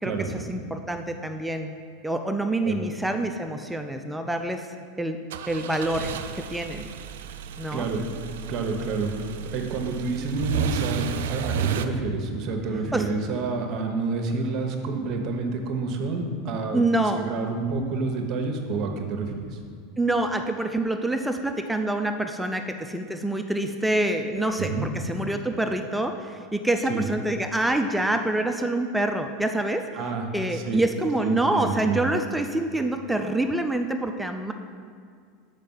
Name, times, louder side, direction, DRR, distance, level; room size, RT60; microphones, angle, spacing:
voice 1, 0.0-1.8 2.0-4.7 5.0-5.2 5.5-6.9 7.6-7.9 12.9-13.1 16.7-17.2 20.0-29.9 30.3-34.5, right 1 dB, 5° right, 6 dB, 0.4 m, -26 dB
sound 1, 5.3-11.9, right 8 dB, 80° right, 0.4 m, -32 dB
voice 2, 7.7-8.0 8.5-16.8 17.2-19.3 24.6-24.9 26.9-27.0 30.0-30.2 30.5-30.8 31.2-32.0, right 3 dB, 50° right, 4 dB, 1.0 m, -28 dB
6.6 x 5.1 x 5.5 m, 2.2 s
supercardioid pair, 120°, 0 cm